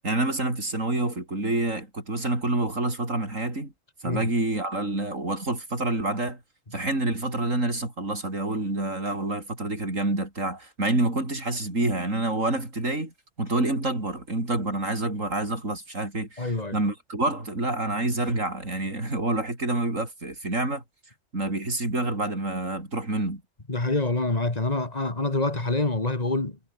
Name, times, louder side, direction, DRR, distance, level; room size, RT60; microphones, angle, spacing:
voice 1, 0.0-3.7 4.0-6.4 6.7-13.1 13.4-20.8 21.3-23.4, right 2 dB, 90° right, 6.5 m, -27 dB
voice 2, 16.4-16.8 23.7-26.6, left 2 dB, 30° left, 2.5 m, -26 dB
omnidirectional pair, 1.3 m